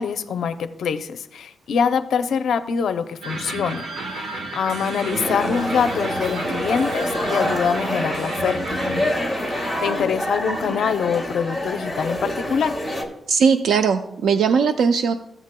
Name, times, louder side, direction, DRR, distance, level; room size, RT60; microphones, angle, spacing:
voice 1, 0.0-9.2 9.5-12.8, left 6 dB, 80° left, 10 dB, 0.6 m, -25 dB
sound 1, 3.2-9.8, right 3 dB, 65° right, 0.9 m, -32 dB
Acoustic guitar, 5.1-10.3, equal, 40° right, 2.8 m, -38 dB
sound 2, 5.2-13.0, left 1 dB, 5° right, 1.6 m, -27 dB
voice 2, 13.3-15.1, right 6 dB, 90° right, 8 dB, 0.4 m, -19 dB
15.0 x 8.0 x 2.2 m, 0.79 s
wide cardioid pair, 155°, 0 cm